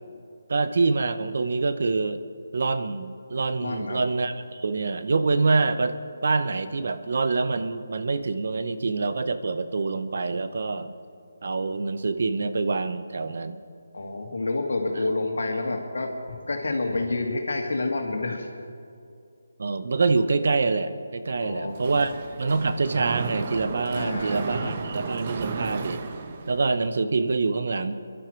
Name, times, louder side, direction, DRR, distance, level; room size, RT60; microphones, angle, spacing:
voice 1, 0.5-2.2 2.5-10.9 11.4-13.6 19.6-22.1 22.4-26.0 26.5-28.0, right 3 dB, 60° right, 11 dB, 0.8 m, -26 dB
voice 2, 3.6-4.0 13.9-18.5 21.4-22.1 23.9-24.8, left 2 dB, 75° left, 3 dB, 2.4 m, -29 dB
Mechanisms, 21.7-26.9, right 4 dB, 35° right, 1.0 m, -33 dB
24.0 x 11.5 x 4.6 m, 2.4 s
figure-of-eight pair, 160°, 0 cm